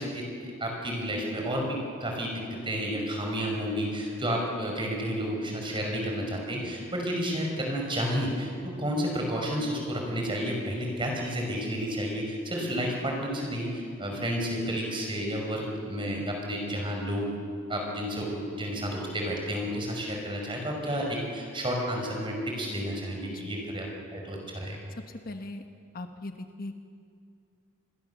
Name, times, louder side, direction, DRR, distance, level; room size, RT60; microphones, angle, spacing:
voice 1, 0.0-17.3 17.7-23.9 24.1-24.9, equal, 25° right, 0 dB, 5.7 m, -31 dB
voice 2, 25.1-25.6 25.9-26.7, left 2 dB, 45° left, 6 dB, 1.2 m, -39 dB
27.0 x 21.5 x 7.2 m, 2.3 s
head